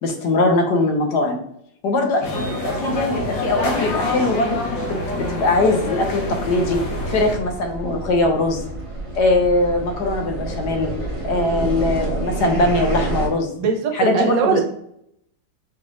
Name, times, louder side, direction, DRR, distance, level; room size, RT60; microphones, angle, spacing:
voice 1, 0.0-1.4 1.8-4.8 5.1-6.8 7.1-8.6 9.1-10.9 11.2-13.5 14.0-14.6, left 2 dB, 65° left, 3 dB, 1.4 m, -21 dB
sound 1, 2.2-7.4, left 2 dB, 85° left, 1.8 m, -26 dB
sound 2, 6.2-13.3, right 3 dB, 30° right, 0.6 m, -29 dB
voice 2, 13.6-14.6, right 6 dB, 75° right, 4 dB, 1.4 m, -20 dB
5.1 x 3.2 x 2.5 m, 0.74 s
omnidirectional pair, 2.0 m